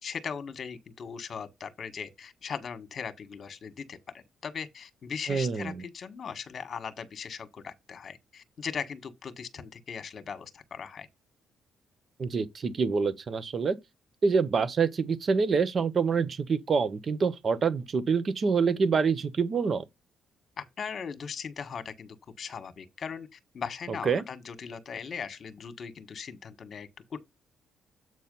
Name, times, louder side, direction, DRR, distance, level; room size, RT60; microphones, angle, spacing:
voice 1, 0.0-11.1 20.6-27.2, left 6 dB, 50° left, 1.5 m, -39 dB
voice 2, 5.3-5.7 12.2-13.8 14.2-19.8 24.0-24.2, right 5 dB, 45° right, 1.1 m, -26 dB
8.1 x 4.3 x 5.4 m
cardioid pair, 90°, 0 cm